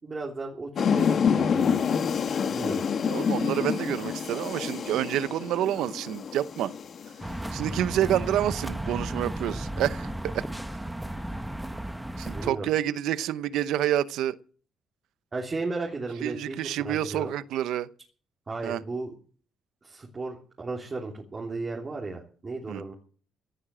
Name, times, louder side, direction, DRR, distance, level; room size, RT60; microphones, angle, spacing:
voice 1, 0.0-1.8 2.5-2.8 12.3-12.7 15.3-16.6 16.8-17.3 18.5-19.1 19.8-22.9, right 3 dB, 30° right, 3.4 m, -35 dB
sound 1, 0.8-7.7, left 7 dB, 55° left, 1.3 m, -27 dB
voice 2, 3.1-6.7 7.5-10.5 12.2-14.4 16.2-17.9 18.6-18.8 22.7-22.8, right 12 dB, 85° right, 0.8 m, -28 dB
sound 2, 7.2-12.5, right 1 dB, 5° right, 1.4 m, -34 dB
17.0 x 9.9 x 7.7 m
cardioid pair, 90°, 0 cm